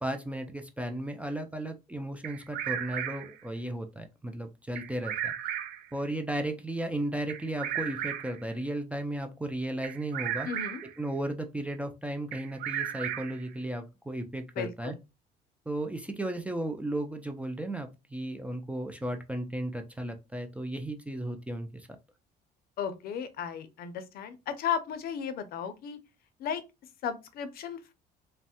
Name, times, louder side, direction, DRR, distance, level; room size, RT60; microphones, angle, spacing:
voice 1, 0.0-5.3 5.9-10.5 11.0-14.9 15.7-22.0, right 1 dB, 10° right, 0.4 m, -35 dB
Bird vocalization bird call bird song, 2.2-3.4 4.8-5.9 7.3-8.5 9.8-11.0 12.3-13.5, right 10 dB, 70° right, 0.5 m, -35 dB
voice 2, 10.4-10.8 14.6-15.0 22.8-26.0 26.4-26.6 27.0-27.9, left 8 dB, 65° left, 0.5 m, -35 dB
3.1 x 2.1 x 2.8 m
cardioid pair, 110°, 17 cm